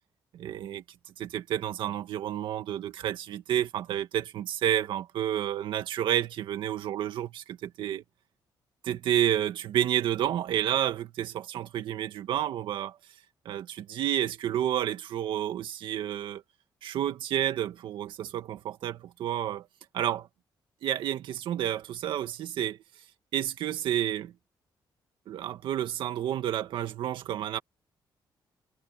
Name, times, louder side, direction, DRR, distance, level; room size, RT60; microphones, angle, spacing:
voice 1, 0.3-0.8 1.2-8.0 8.8-13.0 13.5-16.4 16.8-19.7 19.9-20.3 20.8-22.8 23.3-24.3 25.3-27.6, right 11 dB, 85° right, 2.1 m, -30 dB
cardioid pair, 160°, 8 cm